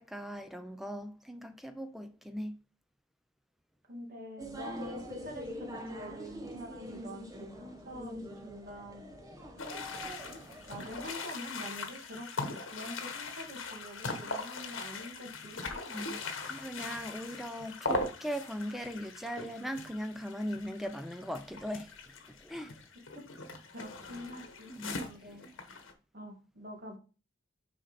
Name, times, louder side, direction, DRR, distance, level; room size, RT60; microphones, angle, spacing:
voice 1, 0.0-2.6 15.9-21.9 22.4-22.8 24.7-25.0, equal, ahead, 0.4 m, -39 dB
voice 2, 3.9-8.2 8.4-9.1 9.9-10.4 10.7-15.6 23.1-23.2 23.7-25.4 26.1-27.0, equal, 45° right, 2.0 m, -45 dB
sound 1, 4.4-11.1, equal, 15° right, 0.8 m, -44 dB
sound 2, 9.6-25.9, left 3 dB, 80° left, 1.1 m, -40 dB
6.2 x 4.2 x 4.1 m
head